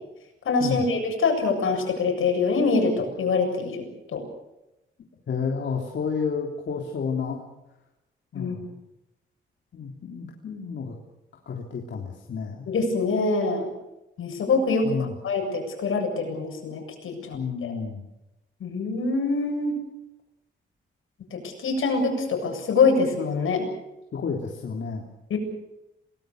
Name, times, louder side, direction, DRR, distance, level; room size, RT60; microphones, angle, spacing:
voice 1, 0.4-3.8 4.1-4.2 8.3-8.6 12.7-13.7 14.2-17.7 18.6-19.8 21.3-23.6 25.3-25.4, left 4 dB, 75° left, 3 dB, 7.6 m, -24 dB
voice 2, 5.3-7.4 8.3-8.8 9.7-11.0 11.4-12.7 14.8-15.1 17.3-18.0 24.1-25.0, left 5 dB, 60° left, 0 dB, 3.3 m, -30 dB
28.0 x 19.5 x 6.6 m, 0.91 s
wide cardioid pair, 125°, 21 cm